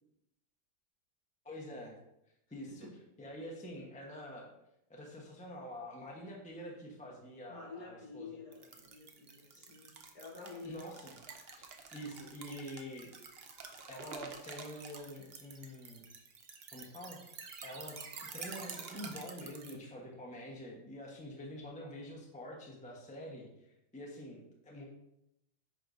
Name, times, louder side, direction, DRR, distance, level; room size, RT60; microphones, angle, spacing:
voice 1, 1.4-2.0 2.5-2.9 3.2-4.5 4.9-8.4 10.6-11.2 11.9-13.5 13.9-16.1 16.7-18.0 18.3-24.8, equal, 5° left, -2 dB, 0.8 m, -46 dB
voice 2, 7.5-10.9, left 4 dB, 55° left, -4 dB, 2.6 m, -49 dB
sound 1, 8.5-19.8, right 5 dB, 65° right, 0.6 m, -49 dB
9.5 x 4.9 x 2.7 m, 0.84 s
omnidirectional pair, 1.9 m